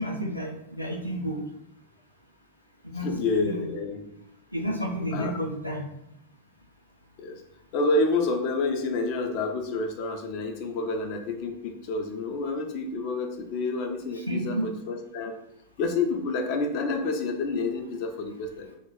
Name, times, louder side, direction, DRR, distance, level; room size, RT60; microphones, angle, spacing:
voice 1, 0.0-1.4 2.8-3.1 3.3-3.7 4.5-5.9 14.1-14.7, equal, 90° right, 0 dB, 0.3 m, -31 dB
voice 2, 3.0-4.1 5.1-5.3 7.2-7.4 7.7-15.3 15.8-18.7, left 3 dB, 45° left, 4 dB, 0.4 m, -28 dB
2.2 x 2.2 x 3.5 m, 0.82 s
figure-of-eight pair, 90°, 0 cm